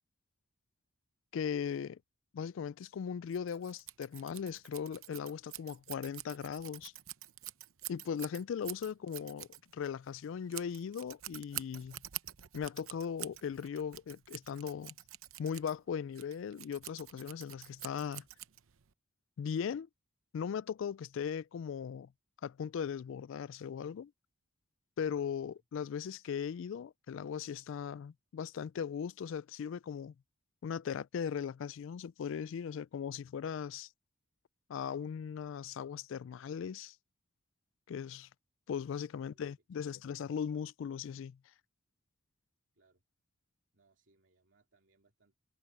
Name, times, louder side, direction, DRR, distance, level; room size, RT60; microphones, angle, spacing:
voice 1, 1.3-2.0 2.3-6.9 7.9-9.5 9.7-12.0 12.5-14.9 15.4-18.3 19.4-19.9 20.3-22.1 22.4-24.1 25.0-30.1 30.6-33.9 34.7-37.0 37.9-38.3 38.7-41.4, left 7 dB, 65° left, 0.3 m, -38 dB
Scissors, 3.3-18.9, right 15 dB, 80° right, 0.8 m, -47 dB
voice 2, 25.2-25.6 39.1-39.5 39.8-40.0 42.7-43.0 43.7-45.4, right 2 dB, 60° right, 3.0 m, -71 dB
head